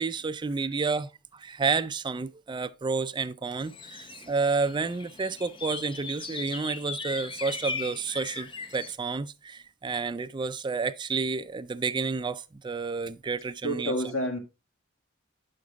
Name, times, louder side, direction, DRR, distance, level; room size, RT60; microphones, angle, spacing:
voice 1, 0.0-13.9, right 4 dB, 25° right, 0.4 m, -30 dB
sound 1, 3.6-8.9, left 4 dB, 25° left, 0.6 m, -39 dB
voice 2, 13.6-14.4, equal, 80° left, 1.9 m, -29 dB
9.4 x 6.6 x 3.6 m
head